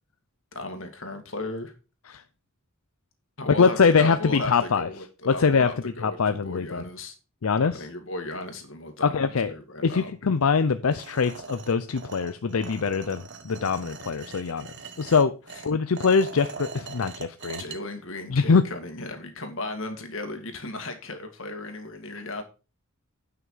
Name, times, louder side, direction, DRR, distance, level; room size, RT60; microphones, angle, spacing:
voice 1, 0.5-1.7 3.4-7.1 7.6-10.1 15.5-15.6 17.6-22.4, left 2 dB, 65° left, 6 dB, 2.2 m, -36 dB
voice 2, 3.6-4.9 5.3-5.7 6.0-6.8 7.4-7.8 9.0-9.5 9.8-14.7 15.0-15.3 15.6-17.6 18.3-18.6, left 5 dB, 85° left, 11 dB, 0.6 m, -23 dB
sound 1, 10.9-17.8, right 4 dB, 60° right, 1.3 m, -42 dB
9.3 x 6.0 x 5.5 m, 0.32 s
head